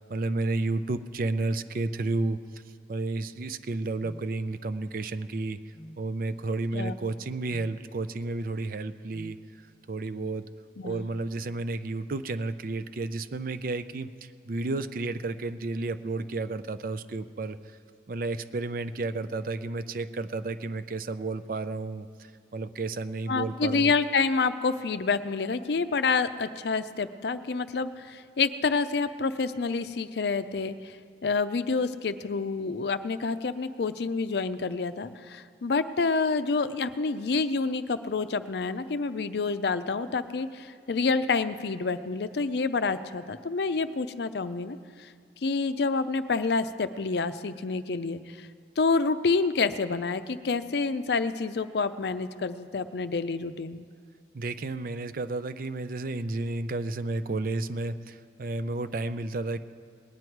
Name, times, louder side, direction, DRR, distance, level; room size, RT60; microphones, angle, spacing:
voice 1, 0.0-2.6 2.9-9.4 9.9-10.5 10.8-17.8 18.1-23.9 54.3-59.6, right 3 dB, 50° right, 12 dB, 0.5 m, -32 dB
sound 1, 4.0-4.3 5.7-6.0 7.5-7.8 9.1-9.4, equal, 25° left, 0.8 m, -47 dB
voice 2, 10.8-11.1 23.3-31.0 31.2-45.1 45.4-48.5 48.8-53.9, left 4 dB, 65° left, 12 dB, 0.5 m, -28 dB
20.0 x 9.6 x 4.6 m, 2.1 s
head